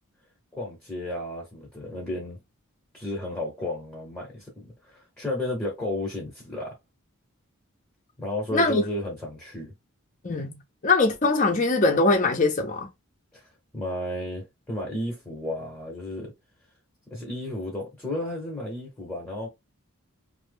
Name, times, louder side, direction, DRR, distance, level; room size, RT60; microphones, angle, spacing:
voice 1, 0.5-2.4 2.9-6.8 8.2-9.7 13.3-13.5 13.7-16.3 17.1-19.5, left 1 dB, 10° left, 0.8 m, -33 dB
voice 2, 8.5-8.8 10.2-10.6 10.8-12.9, left 3 dB, 35° left, 0.5 m, -22 dB
2.7 x 2.0 x 3.3 m
head